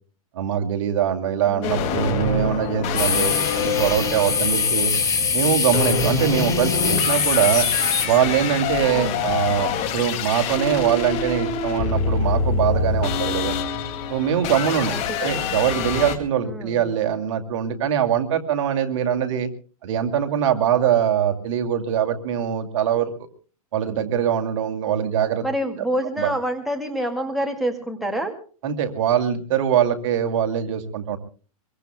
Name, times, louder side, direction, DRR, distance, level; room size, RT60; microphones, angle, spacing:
voice 1, 0.3-4.9 5.3-7.7 8.0-13.5 14.1-14.9 15.2-19.5 19.8-23.1 23.7-25.4 26.2-26.3 28.6-31.2, right 9 dB, 55° right, 6 dB, 2.4 m, -22 dB
voice 2, 1.5-1.9 8.9-9.2 14.9-15.4 16.4-16.8 25.4-28.3, right 1 dB, ahead, 2 dB, 2.2 m, -27 dB
sound 1, 1.6-16.2, left 6 dB, 35° left, 2.3 m, -26 dB
sound 2, 3.0-8.1, left 5 dB, 15° left, 3.6 m, -23 dB
23.5 x 23.0 x 2.2 m, 0.39 s
hypercardioid pair, 140°, 19 cm